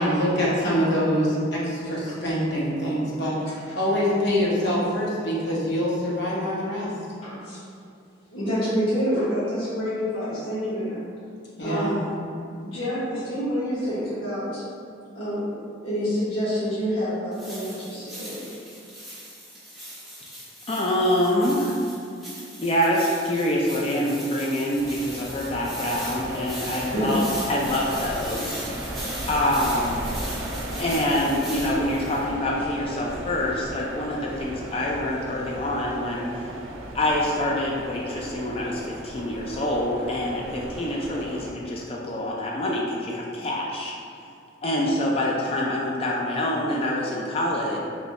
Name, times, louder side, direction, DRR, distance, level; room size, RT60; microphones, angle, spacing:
voice 1, 0.0-3.3 3.7-6.9 11.6-11.9, equal, 55° left, -7 dB, 1.0 m, -24 dB
voice 2, 7.2-7.6 8.3-11.1 11.6-12.0 12.6-14.6 15.1-18.5 26.9-27.3, equal, 80° left, -12 dB, 1.1 m, -27 dB
sound 1, 17.3-32.2, equal, ahead, 1.1 m, -39 dB
voice 3, 20.7-21.7 22.6-28.9 29.3-30.0 30.8-36.5 36.9-43.9 44.6-47.8, left 1 dB, 30° left, -3 dB, 0.3 m, -26 dB
sound 2, 24.8-41.5, right 1 dB, 80° right, 0.5 m, -36 dB
3.2 x 2.6 x 4.0 m, 2.5 s
head